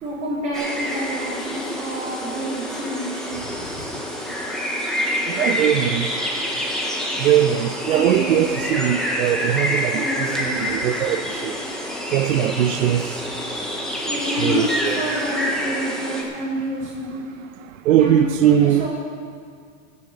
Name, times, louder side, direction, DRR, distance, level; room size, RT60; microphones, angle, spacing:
voice 1, 0.0-3.2 3.7-3.8 7.9-8.4 9.9-10.6 14.0-17.2 17.9-18.9, equal, 20° right, 3.0 m, -28 dB
sound 1, 0.5-16.2, equal, ahead, 0.5 m, -27 dB
voice 2, 5.3-6.1 7.2-11.6 12.1-13.3 14.1-15.0 17.9-18.9, right 11 dB, 75° right, 0.6 m, -20 dB
15.5 x 6.6 x 6.5 m
supercardioid pair, 160°, 40 cm